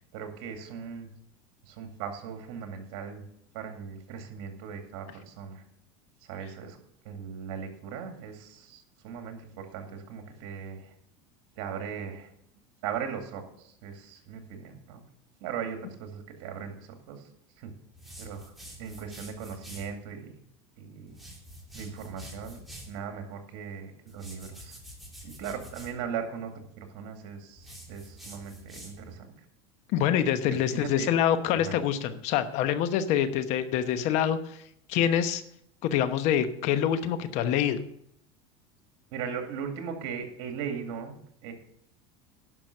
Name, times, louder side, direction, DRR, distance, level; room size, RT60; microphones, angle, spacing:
voice 1, 0.1-1.1 1.6-3.2 3.5-5.6 6.2-6.8 7.0-10.9 11.6-12.3 12.8-15.0 15.4-17.3 17.6-17.7 18.2-20.4 20.8-21.2 21.7-24.8 25.2-29.3 30.5-31.1 31.5-31.8 39.1-41.2 41.4-41.5, right 7 dB, 70° right, 5 dB, 2.3 m, -38 dB
sound 1, 17.9-19.9 21.1-23.0 24.1-26.0 27.6-29.2, equal, ahead, 2.7 m, -47 dB
voice 2, 29.9-34.6 34.9-35.4 35.8-37.8, left 9 dB, 60° left, 12 dB, 1.0 m, -26 dB
11.0 x 6.1 x 6.6 m, 0.72 s
supercardioid pair, 120°, 13 cm